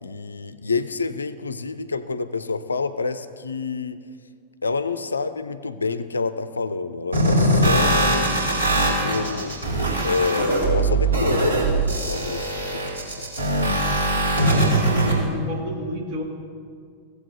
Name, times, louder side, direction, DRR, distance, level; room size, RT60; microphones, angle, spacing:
voice 1, 0.0-4.0 4.6-8.3 8.8-9.6 10.0-13.3, left 4 dB, 75° left, 13 dB, 0.4 m, -28 dB
sound 1, 7.1-15.1, right 1 dB, 75° right, 2.8 m, -21 dB
voice 2, 14.4-16.2, equal, 40° right, -2 dB, 2.0 m, -30 dB
17.0 x 7.8 x 2.8 m, 2.1 s
figure-of-eight pair, 90°, 0 cm